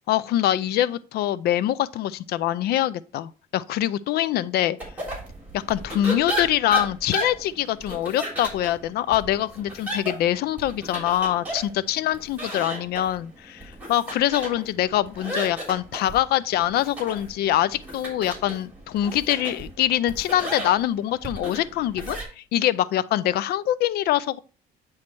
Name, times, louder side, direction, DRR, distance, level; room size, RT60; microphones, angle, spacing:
voice 1, 0.1-4.8 5.5-24.4, left 12 dB, 70° left, 0.4 m, -24 dB
sound 1, 4.8-22.2, right 1 dB, 10° right, 3.3 m, -35 dB
9.5 x 3.2 x 4.4 m
cardioid pair, 110°, 17 cm